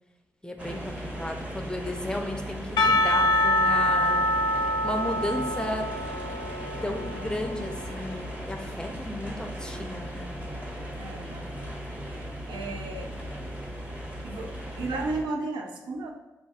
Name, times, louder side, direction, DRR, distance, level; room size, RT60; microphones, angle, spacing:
voice 1, 0.4-4.3 4.8-5.9 6.8-10.3, left 1 dB, 10° left, 5 dB, 0.5 m, -34 dB
sound 1, 0.6-15.2, equal, 15° right, 0.9 m, -37 dB
Percussion / Church bell, 2.8-8.0, left 1 dB, 70° left, 0.4 m, -25 dB
voice 2, 11.0-12.2 12.5-13.1 14.2-16.1, right 2 dB, 80° right, 2 dB, 0.4 m, -34 dB
4.0 x 2.4 x 2.4 m, 1.0 s
supercardioid pair, 45°, 8 cm